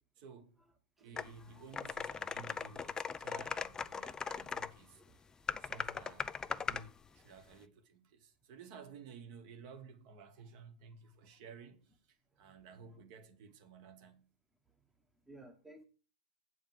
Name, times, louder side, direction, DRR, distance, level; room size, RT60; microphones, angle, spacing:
voice 1, 0.2-0.6 1.0-5.2 5.6-14.3, right 5 dB, 45° right, 1.3 m, -54 dB
voice 2, 1.0-2.0 5.0-5.2 6.2-6.3 12.8-13.0 15.3-15.8, right 1 dB, 5° right, 1.0 m, -59 dB
sound 1, 1.2-1.3 1.7-4.7 5.5-6.9, left 6 dB, 15° left, 0.3 m, -39 dB
7.9 x 5.0 x 7.5 m
hypercardioid pair, 135°, 5 cm